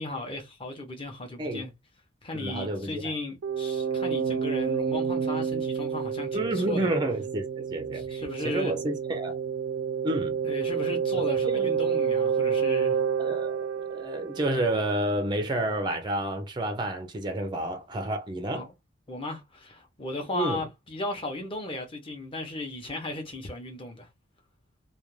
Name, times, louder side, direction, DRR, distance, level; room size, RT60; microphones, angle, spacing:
voice 1, 0.0-1.7 2.2-7.0 7.9-8.7 10.4-13.0 18.5-18.7 19.1-24.1, left 2 dB, 25° left, 0.7 m, -36 dB
voice 2, 2.3-3.1 6.3-9.4 10.0-10.4 11.5-11.7 13.2-18.7 20.3-20.7, right 1 dB, 20° right, 0.4 m, -30 dB
sound 1, 3.4-15.0, right 7 dB, 85° right, 0.4 m, -29 dB
2.4 x 2.2 x 3.1 m
head